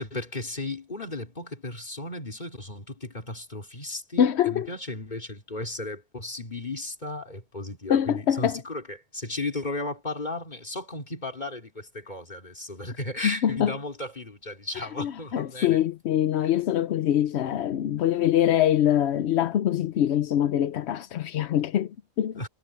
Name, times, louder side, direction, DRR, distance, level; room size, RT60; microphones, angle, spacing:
voice 1, 0.0-15.8 22.3-22.5, left 2 dB, 45° left, 4.1 m, -35 dB
voice 2, 4.2-4.7 7.9-8.6 13.2-13.7 15.0-22.4, left 10 dB, 85° left, 0.9 m, -24 dB
omnidirectional pair, 1.1 m